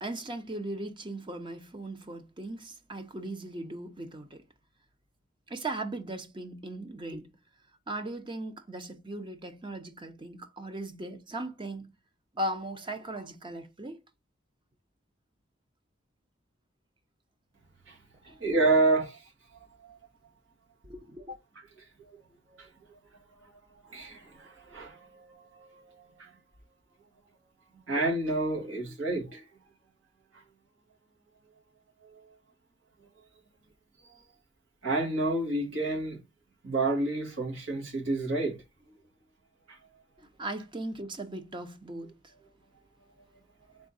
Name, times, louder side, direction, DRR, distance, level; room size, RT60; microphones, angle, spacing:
voice 1, 0.0-4.4 5.5-7.3 7.9-11.9 12.3-14.0 18.2-18.4 20.8-21.4 40.2-42.3, right 1 dB, 25° right, 0.6 m, -38 dB
voice 2, 18.4-19.2 22.5-22.7 23.9-25.8 26.2-26.3 27.9-29.4 34.8-36.2 36.6-38.6 39.7-39.8, right 2 dB, 85° right, 1.9 m, -29 dB
3.6 x 3.6 x 4.0 m
head